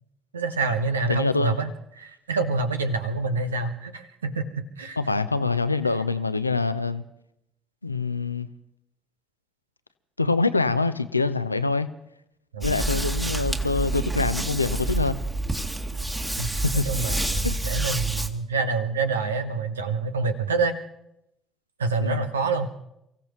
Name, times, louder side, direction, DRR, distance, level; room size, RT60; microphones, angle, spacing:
voice 1, 0.3-1.7 2.0-5.0 12.5-12.7 16.4-20.8 21.8-22.7, right 4 dB, 80° right, 9 dB, 1.0 m, -27 dB
voice 2, 1.1-1.6 5.0-7.0 7.8-8.5 10.2-11.9 12.6-15.2 16.6-16.9 17.4-17.6 22.0-22.2, left 3 dB, 90° left, 13 dB, 0.5 m, -25 dB
sound 1, 12.6-18.3, right 2 dB, 15° right, 1.7 m, -28 dB
29.0 x 16.0 x 3.1 m, 0.81 s
figure-of-eight pair, 50°, 0 cm